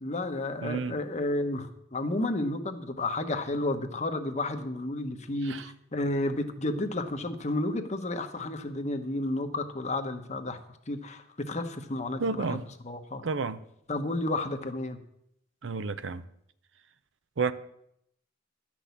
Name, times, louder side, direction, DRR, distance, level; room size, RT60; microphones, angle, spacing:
voice 1, 0.0-10.6 10.9-13.2 13.9-15.0, left 2 dB, 35° left, 7 dB, 1.0 m, -32 dB
voice 2, 0.6-1.0 5.4-5.7 12.2-12.6 13.2-13.6 15.6-16.2 17.4-17.5, right 4 dB, 65° right, 13 dB, 0.6 m, -31 dB
12.0 x 6.1 x 8.2 m, 0.76 s
head